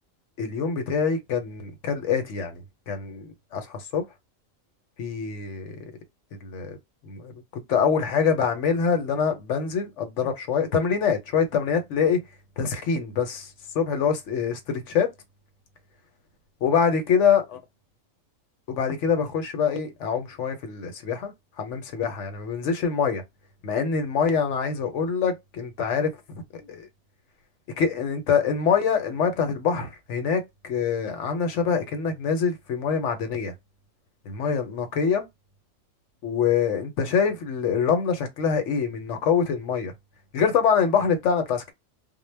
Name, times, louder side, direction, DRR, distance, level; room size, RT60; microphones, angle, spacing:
voice 1, 0.4-4.0 5.0-5.8 6.4-6.8 7.1-12.2 12.6-13.5 13.7-15.1 16.6-17.4 18.7-21.3 21.6-23.2 23.6-26.9 27.8-33.5 34.3-35.2 36.2-39.9 40.3-41.7, left 6 dB, 70° left, 1.0 m, -25 dB
2.2 x 2.1 x 3.1 m
omnidirectional pair, 1.4 m